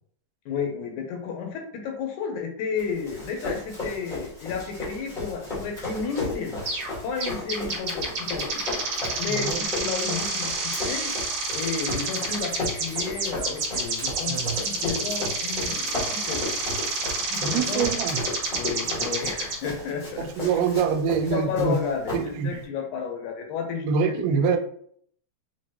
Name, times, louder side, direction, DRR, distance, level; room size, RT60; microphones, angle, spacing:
voice 1, 0.5-6.6 7.0-8.6 9.2-11.1 11.5-16.7 17.3-17.9 18.5-20.6 21.3-24.6, left 6 dB, 80° left, 3 dB, 2.1 m, -32 dB
Run, 2.8-22.6, left 2 dB, 55° left, 0.5 m, -35 dB
sound 1, 6.7-6.9 7.2-19.6, right 3 dB, 50° right, 2.1 m, -29 dB
voice 2, 14.1-14.6 17.4-18.2 20.2-21.8 22.1-22.6 23.9-24.6, right 6 dB, 85° right, 7 dB, 2.2 m, -25 dB
6.1 x 2.4 x 2.9 m, 0.62 s
omnidirectional pair, 3.7 m